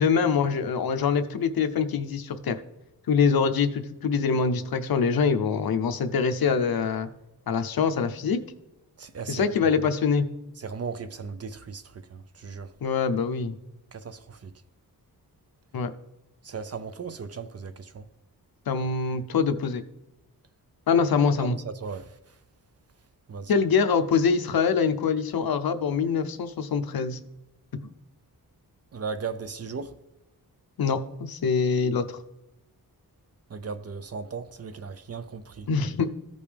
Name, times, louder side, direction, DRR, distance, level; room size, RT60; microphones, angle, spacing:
voice 1, 0.0-2.6 3.1-7.1 7.5-8.4 9.3-10.3 12.8-13.5 15.7-15.9 18.7-19.8 20.9-21.6 23.5-27.2 30.8-32.2 35.7-36.1, left 5 dB, 70° left, 0.7 m, -24 dB
voice 2, 9.0-9.7 10.6-12.7 13.9-14.5 16.4-18.1 21.4-22.4 23.3-23.5 28.9-30.0 33.5-35.7, right 5 dB, 40° right, 0.5 m, -37 dB
15.0 x 5.3 x 3.4 m
wide cardioid pair, 135°, 37 cm